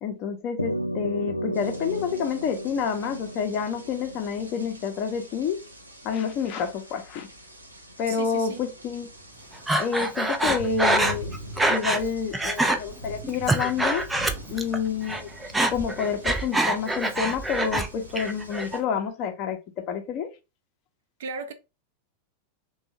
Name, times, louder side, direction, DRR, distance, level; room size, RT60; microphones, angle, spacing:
voice 1, 0.0-5.6 6.0-7.3 8.0-9.1 9.8-11.3 11.7-14.1 14.5-15.3 15.7-20.3, left 6 dB, 40° left, 0.8 m, -28 dB
sound 1, 0.6-5.2, equal, 90° left, 0.3 m, -34 dB
sound 2, 1.5-18.8, equal, 85° right, 0.9 m, -44 dB
voice 2, 8.1-8.6 21.2-21.5, right 4 dB, 60° right, 0.6 m, -35 dB
Breathing, 9.7-12.1 12.3-12.8 13.2-14.8 15.0-17.9 18.2-18.8, right 1 dB, 5° right, 0.5 m, -25 dB
3.4 x 2.4 x 2.9 m
figure-of-eight pair, 90°, 0 cm